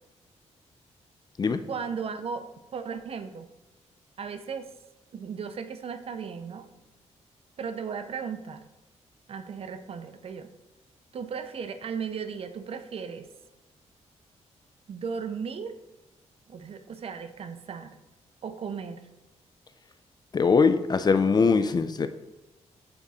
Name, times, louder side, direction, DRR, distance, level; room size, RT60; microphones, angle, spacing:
voice 1, 1.7-2.5 2.7-3.5 4.2-4.7 5.1-6.7 7.6-8.6 9.3-10.5 11.1-13.3 14.9-15.8 16.5-18.0 18.4-19.1, right 6 dB, 55° right, 9 dB, 0.6 m, -36 dB
voice 2, 20.3-22.1, left 5 dB, 35° left, 11 dB, 0.4 m, -22 dB
8.8 x 3.6 x 4.2 m, 0.97 s
cardioid pair, 100°, 12 cm